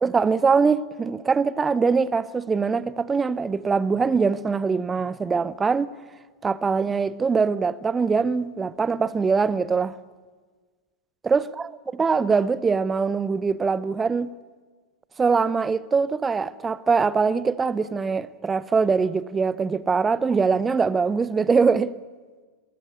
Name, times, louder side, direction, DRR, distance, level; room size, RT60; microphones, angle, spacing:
voice 1, 0.0-5.9 6.4-9.9 11.2-14.3 15.2-21.9, right 5 dB, 15° right, 0.7 m, -23 dB
21.0 x 16.5 x 8.3 m
figure-of-eight pair, 90°, 0 cm